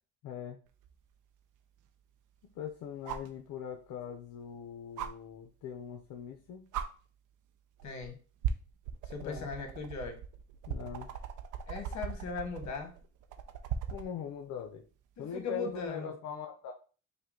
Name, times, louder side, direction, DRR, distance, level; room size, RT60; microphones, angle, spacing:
voice 1, 0.2-0.6 2.5-6.7 9.2-9.5 10.7-11.1 13.9-14.8 15.2-16.7, left 8 dB, 80° left, 2 dB, 0.6 m, -41 dB
sound 1, 0.8-0.9 3.1-3.4 5.0-5.1 6.2-6.4 6.7-6.9 7.8-8.1 8.4-14.1 15.8-15.9, right 8 dB, 85° right, 0.6 m, -38 dB
voice 2, 7.8-8.2 9.1-10.2 11.7-12.9 15.2-16.1, left 4 dB, 65° left, 4 dB, 1.3 m, -39 dB
5.4 x 2.2 x 3.7 m, 0.37 s
cardioid pair, 90°, 30 cm